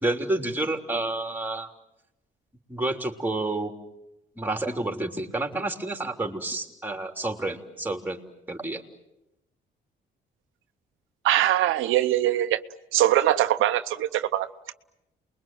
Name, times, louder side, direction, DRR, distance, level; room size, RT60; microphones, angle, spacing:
voice 1, 0.0-1.7 2.7-3.7 4.4-8.2 8.5-8.8, right 2 dB, 10° right, 4 dB, 3.5 m, -29 dB
voice 2, 11.2-12.6 12.9-14.5, right 13 dB, 85° right, 9 dB, 0.9 m, -22 dB
28.5 x 22.0 x 9.2 m, 0.89 s
cardioid pair, 90°, 20 cm